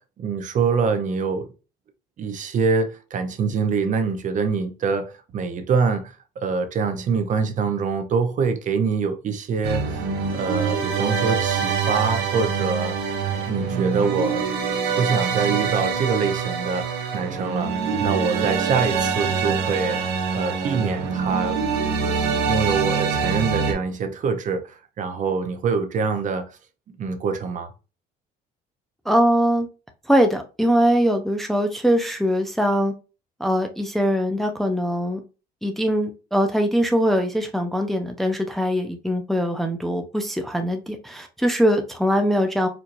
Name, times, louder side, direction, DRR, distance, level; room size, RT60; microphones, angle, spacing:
voice 1, 0.0-1.5 2.2-10.1 10.3-13.1 13.5-14.6 15.0-21.6 22.1-26.6 27.0-27.7, right 5 dB, 50° right, 0.7 m, -25 dB
sound 1, 9.6-23.7, right 5 dB, 80° right, 0.9 m, -25 dB
voice 2, 29.1-29.7 30.1-32.9 33.4-35.2 35.6-42.7, equal, ahead, 0.5 m, -22 dB
4.5 x 2.7 x 2.5 m
cardioid pair, 110°, 17 cm